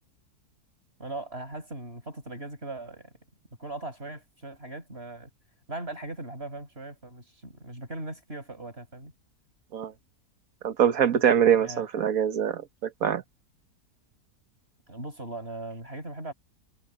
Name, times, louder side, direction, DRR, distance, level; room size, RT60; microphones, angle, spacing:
voice 1, 1.0-3.1 3.6-5.3 5.7-9.1 11.6-11.8 14.9-16.3, right 2 dB, 40° right, 7.0 m, -39 dB
voice 2, 10.6-13.2, right 8 dB, 65° right, 1.8 m, -23 dB
omnidirectional pair, 1.6 m